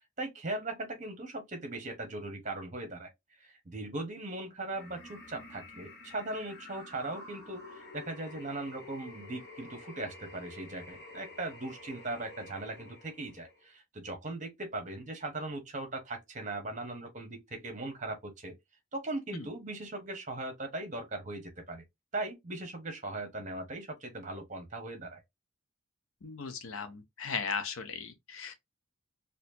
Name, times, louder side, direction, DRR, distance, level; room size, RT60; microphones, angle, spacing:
voice 1, 0.2-3.1 3.4-18.5 18.9-21.8 22.1-25.2, right 2 dB, 35° right, 1.1 m, -39 dB
sound 1, 4.7-13.7, left 2 dB, 50° left, 1.4 m, -50 dB
voice 2, 26.2-28.6, left 5 dB, 85° left, 0.8 m, -37 dB
4.3 x 2.6 x 2.7 m
head